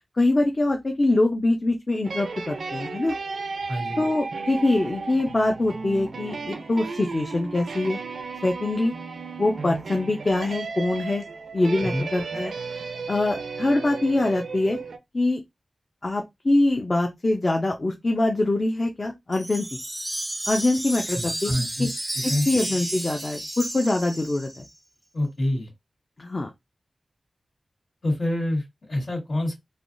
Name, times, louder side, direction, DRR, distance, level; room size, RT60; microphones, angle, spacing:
voice 1, 0.2-3.1 4.0-8.0 8.4-8.9 9.4-11.2 11.5-12.8 13.1-14.8 15.1-15.4 16.0-19.7 20.5-21.5 21.8-21.9 22.2-24.7 26.2-26.5, left 2 dB, 40° left, 0.5 m, -24 dB
sound 1, 2.0-15.0, right 4 dB, 85° right, 0.4 m, -34 dB
voice 2, 3.7-4.0 11.8-12.1 21.1-22.5 25.1-25.7 28.0-29.6, left 1 dB, 85° left, 1.8 m, -27 dB
Wind chime, 19.3-24.7, right 1 dB, 15° right, 0.3 m, -32 dB
3.3 x 2.3 x 2.5 m
wide cardioid pair, 75°, 0 cm